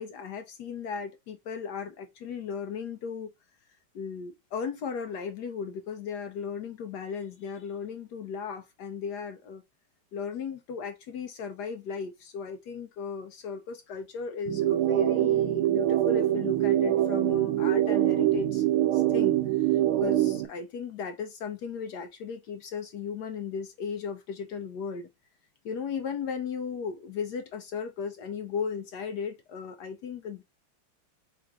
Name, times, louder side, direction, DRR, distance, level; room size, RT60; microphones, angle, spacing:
voice 1, 0.0-3.3 3.9-9.6 10.1-18.6 18.9-25.1 25.6-30.4, left 6 dB, 75° left, 0.9 m, -36 dB
sound 1, 14.5-20.5, right 13 dB, 90° right, 1.5 m, -24 dB
3.7 x 2.5 x 4.5 m
omnidirectional pair, 2.3 m